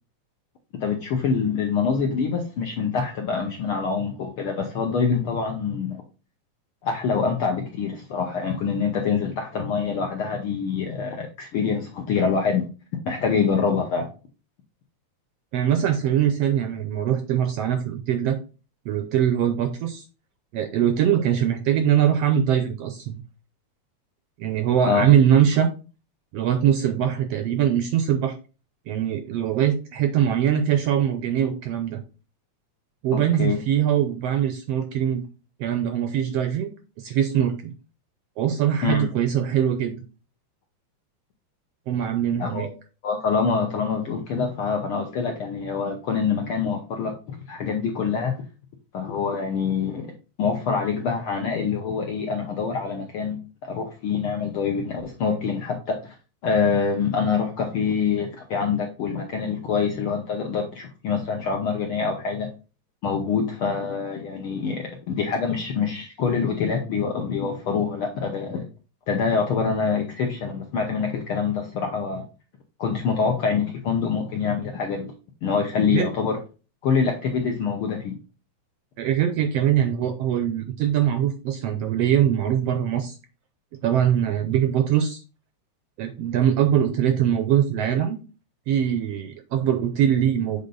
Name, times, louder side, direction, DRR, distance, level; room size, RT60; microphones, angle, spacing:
voice 1, 0.8-6.0 6.8-12.7 13.0-14.1 24.9-25.1 33.1-33.6 38.8-39.1 42.4-42.7 43.0-48.3 48.9-50.1 50.4-56.1 56.4-62.5 63.0-68.7 69.1-72.2 72.8-75.1 75.4-76.4 76.8-78.2, left 5 dB, 70° left, 2 dB, 1.3 m, -25 dB
voice 2, 15.5-18.4 18.8-20.0 20.5-23.2 24.4-25.7 26.3-28.3 28.9-32.0 33.0-35.2 35.6-37.7 38.4-40.0 41.9-42.7 75.9-76.1 79.0-83.2 83.8-85.2 86.0-88.2 88.7-90.7, right 9 dB, 80° right, 8 dB, 1.5 m, -22 dB
7.7 x 3.7 x 3.8 m, 0.34 s
omnidirectional pair, 3.4 m